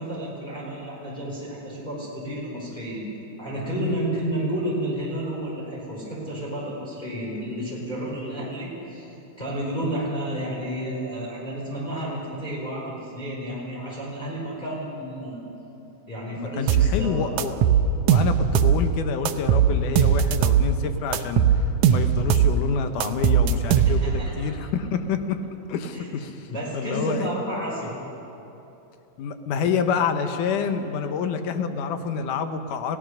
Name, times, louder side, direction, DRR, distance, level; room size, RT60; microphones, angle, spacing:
voice 1, 0.0-3.0 3.4-9.1 9.4-15.4 16.1-17.3 23.8-24.5 25.9-26.1 26.5-27.9, right 1 dB, 15° left, -5 dB, 4.6 m, -31 dB
voice 2, 16.4-17.8 18.1-21.4 21.9-25.4 25.7-27.3 29.2-33.0, left 6 dB, 80° left, 8 dB, 2.6 m, -28 dB
sound 1, 16.7-16.9 17.4-18.8 19.2-20.7 21.1-22.6 23.0-24.2, right 9 dB, 75° right, 2.1 m, -19 dB
29.5 x 16.5 x 6.5 m, 3.0 s
omnidirectional pair, 3.6 m